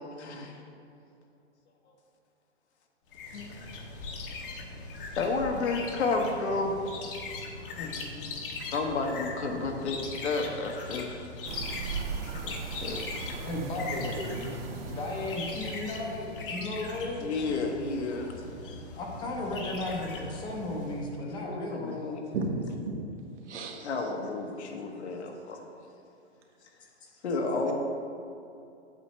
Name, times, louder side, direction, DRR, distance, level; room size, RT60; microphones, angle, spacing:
voice 1, 0.2-0.6 3.3-3.6 5.2-6.7 7.5-8.3 8.7-11.2 12.4-13.0 13.3-13.5 14.1-14.6 17.2-18.3 21.4-22.2 23.8-25.7 27.2-27.8, left 3 dB, 70° left, 2 dB, 1.3 m, -32 dB
sound 1, 3.1-21.1, left 3 dB, 50° left, 1.1 m, -40 dB
sound 2, 11.4-16.4, right 6 dB, 55° right, 0.6 m, -39 dB
voice 2, 13.4-17.4 18.9-22.0, left 2 dB, 15° left, 0 dB, 0.7 m, -35 dB
voice 3, 22.3-23.1 23.5-23.9, right 2 dB, 85° right, 1 dB, 1.5 m, -33 dB
8.3 x 8.2 x 3.2 m, 2.7 s
hypercardioid pair, 150°, 35 cm